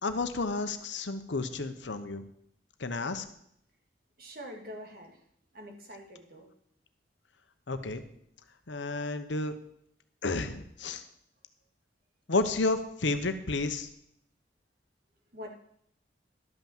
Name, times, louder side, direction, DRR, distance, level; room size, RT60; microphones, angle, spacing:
voice 1, 0.0-2.2 2.8-3.2 7.7-8.0 8.7-9.5 10.2-11.0 12.3-13.9, left 3 dB, 70° left, 9 dB, 1.0 m, -31 dB
voice 2, 4.2-5.2 5.5-6.5 15.3-15.5, equal, 50° right, 2 dB, 2.1 m, -45 dB
12.0 x 5.9 x 7.3 m, 0.70 s
head